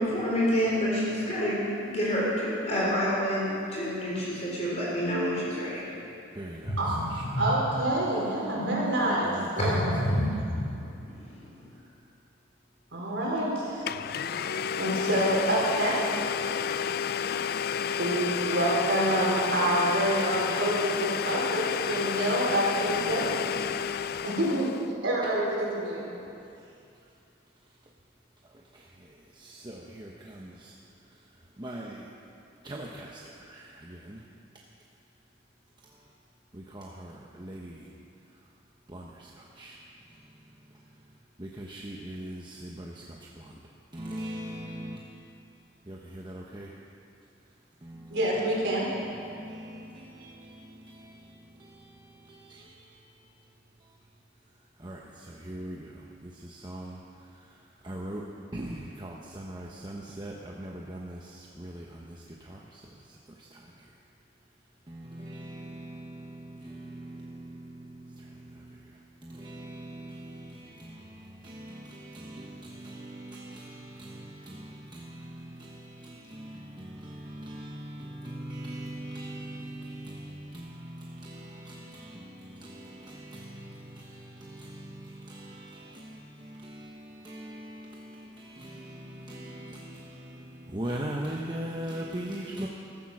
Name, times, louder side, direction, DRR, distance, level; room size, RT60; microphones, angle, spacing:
voice 1, 0.0-5.8 6.6-7.5 8.5-8.8 9.6-11.5, equal, 35° left, -5 dB, 3.9 m, -28 dB
voice 2, 6.3-7.4 9.2-9.8 10.1-10.3 22.8-24.4 28.4-30.7 31.1-32.1 32.6-34.2 35.8-36.1 36.5-37.9 38.9-39.8 40.1-40.8 41.4-43.6 43.9-45.0 45.9-46.7 47.8-48.2 48.7-53.3 53.8-54.0 54.8-58.3 58.5-63.9 64.9-92.7, right 1 dB, 25° right, -2 dB, 1.0 m, -42 dB
voice 3, 7.1-10.1 12.9-13.9 14.2-16.0 18.0-23.4 24.2-24.7 25.0-26.0 48.1-48.9, right 1 dB, 65° right, -4 dB, 4.5 m, -27 dB
Domestic sounds home sounds, 13.4-13.5 13.9-24.9, left 7 dB, 50° left, 0.4 m, -31 dB
15.0 x 14.5 x 6.2 m, 2.6 s
head